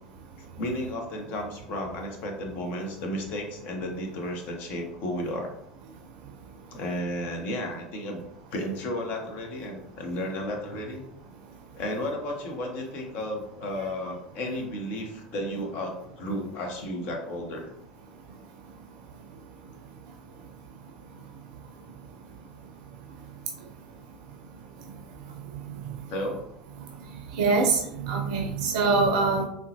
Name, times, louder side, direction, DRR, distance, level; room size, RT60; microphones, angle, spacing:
voice 1, 0.6-5.5 6.7-11.1 11.7-17.7 26.1-26.4, left 1 dB, 45° left, 2 dB, 0.7 m, -33 dB
voice 2, 27.3-29.5, right 4 dB, 55° right, 2 dB, 0.4 m, -24 dB
3.7 x 2.1 x 2.8 m, 0.76 s
figure-of-eight pair, 75°, 4 cm